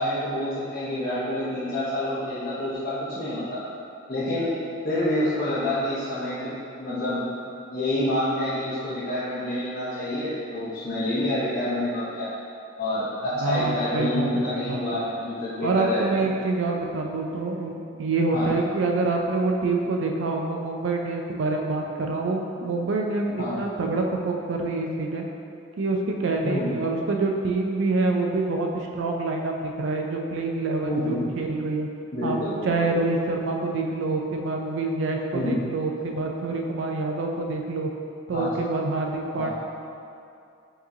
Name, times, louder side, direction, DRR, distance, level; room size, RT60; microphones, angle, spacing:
voice 1, 0.0-3.6 4.1-4.5 4.8-7.2 7.7-12.3 12.8-16.1 18.3-18.5 23.4-23.6 26.4-26.7 30.8-31.2 32.1-32.7 35.3-35.6 38.3-38.5 39.4-39.5, left 1 dB, 50° left, -13 dB, 0.8 m, -27 dB
voice 2, 13.4-14.8 15.6-25.3 25.8-31.9 32.2-37.9 38.3-39.5, right 3 dB, 70° right, 1 dB, 0.4 m, -26 dB
4.6 x 3.0 x 2.7 m, 2.5 s
head